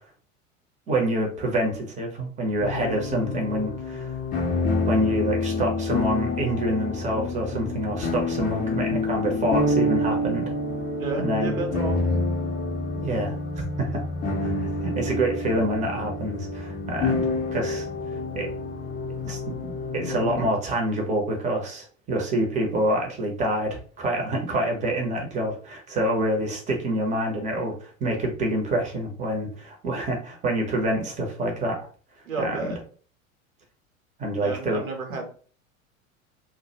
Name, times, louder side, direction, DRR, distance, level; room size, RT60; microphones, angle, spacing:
voice 1, 0.9-4.2 4.9-10.5 11.2-11.6 13.0-13.3 13.8-14.0 14.4-17.9 18.3-18.5 19.2-31.8 32.4-32.8 34.2-34.8 35.1-35.2, right 1 dB, 15° right, 1 dB, 0.7 m, -27 dB
sound 1, 2.6-20.5, left 2 dB, 20° left, 0.6 m, -28 dB
voice 2, 11.0-12.2 32.3-32.8 34.4-35.3, right 3 dB, 75° right, 3 dB, 0.9 m, -31 dB
2.2 x 2.1 x 2.8 m, 0.43 s
figure-of-eight pair, 80°, 41 cm